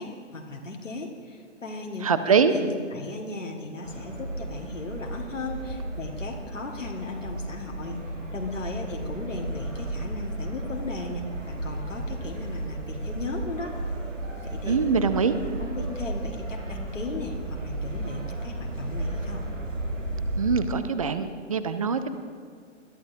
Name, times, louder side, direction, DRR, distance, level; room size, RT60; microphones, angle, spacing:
voice 1, 0.0-8.0 8.3-13.7 14.4-14.8 15.5-19.4, left 2 dB, 75° left, 0 dB, 1.7 m, -36 dB
voice 2, 2.0-2.5 14.7-15.3 20.4-22.1, right 6 dB, 30° right, 11 dB, 0.5 m, -23 dB
sound 1, 3.8-20.6, right 1 dB, 85° right, 2.0 m, -34 dB
21.0 x 12.5 x 2.7 m, 2.1 s
figure-of-eight pair, 130°, 37 cm